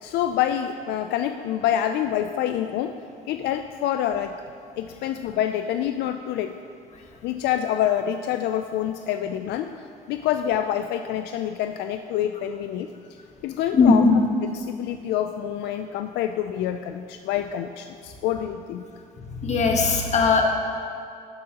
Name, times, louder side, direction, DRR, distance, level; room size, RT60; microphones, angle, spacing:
voice 1, 0.0-2.9 3.3-4.3 4.8-6.5 7.2-9.7 10.1-12.9 13.4-14.1 14.5-18.9, left 10 dB, 80° left, 7 dB, 0.4 m, -26 dB
voice 2, 13.7-14.2 19.3-20.5, left 4 dB, 40° left, 2 dB, 1.3 m, -19 dB
11.5 x 9.6 x 2.9 m, 2.4 s
cardioid pair, 110°, 17 cm